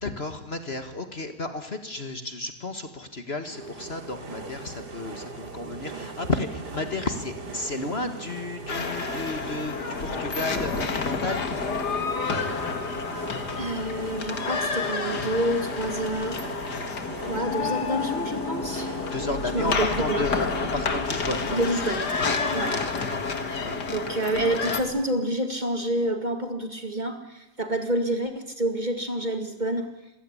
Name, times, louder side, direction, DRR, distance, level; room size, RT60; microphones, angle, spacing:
voice 1, 0.0-11.5 19.1-21.6 22.5-22.7 23.5-23.8, left 2 dB, 40° left, 8 dB, 2.0 m, -32 dB
sound 1, 3.5-21.9, right 3 dB, 85° right, 3.2 m, -40 dB
sound 2, 8.7-24.8, left 4 dB, 80° left, 2.6 m, -29 dB
voice 2, 13.6-16.5 17.3-18.9 19.5-20.3 21.5-22.1 22.5-22.8 23.9-29.9, right 1 dB, 30° right, 6 dB, 2.2 m, -28 dB
27.0 x 16.5 x 9.9 m, 0.97 s
omnidirectional pair, 1.7 m